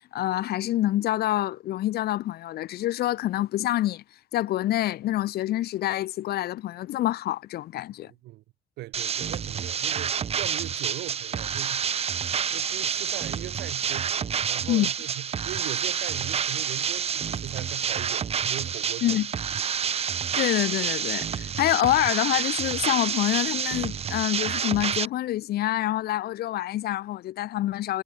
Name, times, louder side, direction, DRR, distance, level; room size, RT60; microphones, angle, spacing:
voice 1, 0.0-4.0 4.3-8.1 14.7-14.9 19.0-19.3 20.3-28.0, left 14 dB, 70° left, 1.5 m, -26 dB
voice 2, 8.0-8.4 8.8-11.9 12.2-19.2, right 18 dB, 85° right, 2.5 m, -39 dB
sound 1, 8.9-25.1, right 7 dB, 35° right, 1.0 m, -29 dB
cardioid pair, 110°, 17 cm